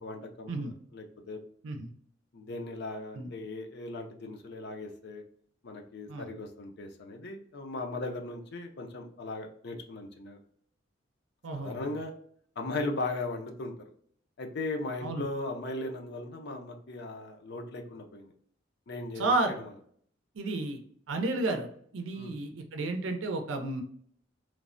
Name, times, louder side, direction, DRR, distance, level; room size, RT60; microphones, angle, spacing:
voice 1, 0.0-1.4 2.3-5.2 5.6-10.4 11.5-12.1 12.6-13.7 14.4-18.3 18.9-19.7 22.1-22.4, left 2 dB, 60° left, 3 dB, 0.5 m, -38 dB
voice 2, 11.4-12.0 15.0-15.2 19.2-19.6 20.3-20.8 21.1-21.7 21.9-23.8, right 2 dB, 80° right, 5 dB, 0.5 m, -31 dB
3.2 x 2.1 x 2.4 m, 0.62 s
head